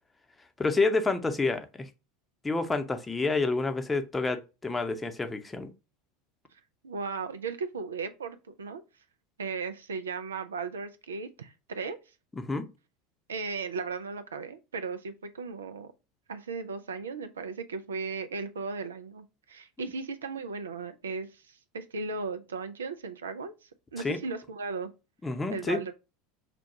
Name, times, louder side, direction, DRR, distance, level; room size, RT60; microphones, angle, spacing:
voice 1, 0.6-1.9 2.4-5.7 12.4-12.6 24.0-24.2 25.2-25.8, left 3 dB, 15° left, 0.7 m, -28 dB
voice 2, 6.8-8.8 9.4-12.0 13.3-15.9 16.3-23.5 23.9-24.9 25.5-25.9, right 4 dB, 75° right, 0.4 m, -36 dB
5.9 x 2.3 x 2.7 m
figure-of-eight pair, 75°, 0 cm